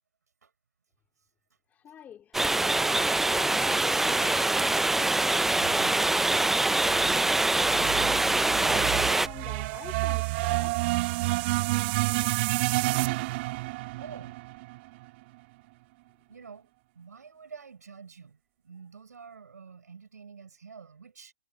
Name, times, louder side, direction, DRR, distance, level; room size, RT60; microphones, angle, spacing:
voice 1, 1.7-8.6 9.1-10.8, left 9 dB, 20° left, 3.7 m, -48 dB
sound 1, 2.3-9.3, right 2 dB, 5° right, 0.4 m, -24 dB
voice 2, 5.6-6.3 13.1-13.2 14.0-14.4 16.3-16.7 16.9-18.4 18.6-21.3, right 6 dB, 85° right, 5.1 m, -47 dB
sound 2, 6.7-15.1, right 21 dB, 40° right, 1.4 m, -29 dB
hypercardioid pair, 135°, 9 cm